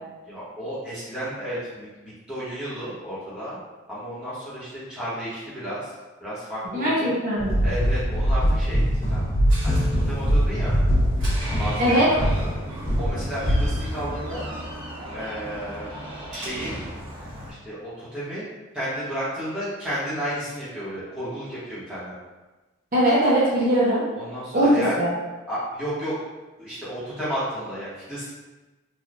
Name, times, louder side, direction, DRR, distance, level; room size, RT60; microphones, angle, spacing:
voice 1, 0.2-3.6 3.9-5.9 6.2-7.2 7.6-9.2 9.6-10.7 11.6-12.5 13.0-14.4 15.1-15.9 16.3-16.7 17.6-18.4 18.7-22.1 24.1-24.9 25.5-26.1 26.6-28.3, equal, 5° right, -12 dB, 1.0 m, -32 dB
voice 2, 6.7-7.6 11.8-12.1 22.9-24.0 24.5-24.7 25.0-25.1, right 1 dB, 40° right, -9 dB, 0.7 m, -20 dB
sound 1, 7.4-14.6, equal, 35° left, 1.1 m, -23 dB
Door, 8.8-17.5, right 1 dB, 65° right, 1.3 m, -37 dB
3.2 x 2.3 x 2.5 m, 1.2 s
head